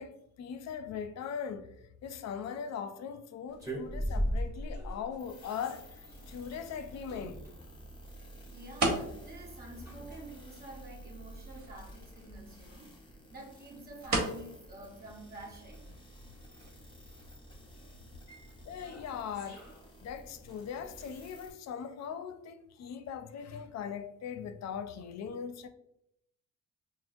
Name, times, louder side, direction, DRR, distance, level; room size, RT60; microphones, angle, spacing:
voice 1, 0.0-1.8 2.0-7.4 18.7-19.6 20.0-25.7, left 7 dB, 60° left, 0.5 m, -40 dB
sound 1, 3.5-21.1, equal, 10° right, 1.2 m, -43 dB
sound 2, 4.7-17.9, right 2 dB, 65° right, 1.2 m, -41 dB
sound 3, 5.2-21.5, right 1 dB, 15° left, 0.9 m, -53 dB
voice 2, 8.5-15.9, right 2 dB, 30° right, 1.3 m, -49 dB
6.0 x 2.0 x 2.6 m
cardioid pair, 90°, 30 cm